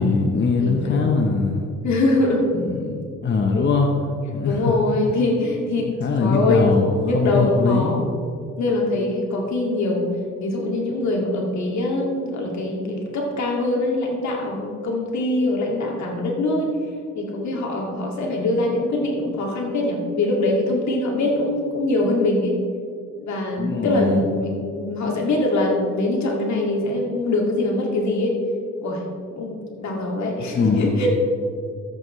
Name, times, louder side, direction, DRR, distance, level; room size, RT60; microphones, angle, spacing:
voice 1, 0.0-1.7 2.6-3.9 4.3-4.7 6.0-8.0 23.6-24.2 30.5-31.0, left 4 dB, 40° left, 2 dB, 0.9 m, -21 dB
voice 2, 0.6-1.2 1.8-2.5 4.4-5.9 6.2-8.0 8.6-10.1 10.4-16.7 17.2-22.6 23.2-28.4 28.8-29.0 29.4-31.1, left 2 dB, 65° left, -1 dB, 2.2 m, -23 dB
13.5 x 8.1 x 3.2 m, 2.3 s
cardioid pair, 90°, 30 cm